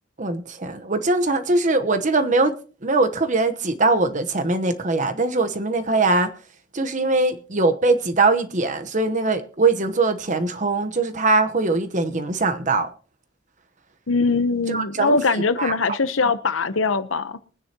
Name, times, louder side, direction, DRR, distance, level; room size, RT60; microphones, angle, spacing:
voice 1, 0.2-2.5 2.8-6.3 6.7-12.9 14.7-15.2 15.6-15.7, right 3 dB, 40° right, 1.0 m, -21 dB
voice 2, 14.1-17.4, left 4 dB, 85° left, 0.9 m, -22 dB
23.0 x 9.8 x 2.9 m
head